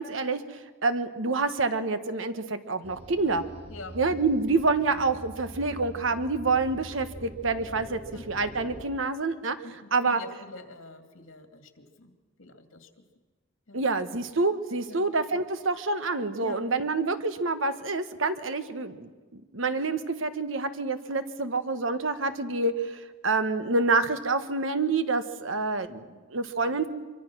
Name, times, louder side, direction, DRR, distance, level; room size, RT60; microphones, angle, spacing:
voice 1, 0.0-3.4 3.9-8.0 8.3-9.6 9.9-10.2 13.7-26.9, right 3 dB, 75° right, 10 dB, 1.3 m, -27 dB
sound 1, 2.8-8.8, right 1 dB, 35° right, 3.5 m, -44 dB
voice 2, 9.6-12.1 12.4-13.0 13.7-13.9 14.8-15.1 16.4-16.7, left 2 dB, 90° left, 6 dB, 2.4 m, -45 dB
24.5 x 24.0 x 6.2 m, 1.3 s
head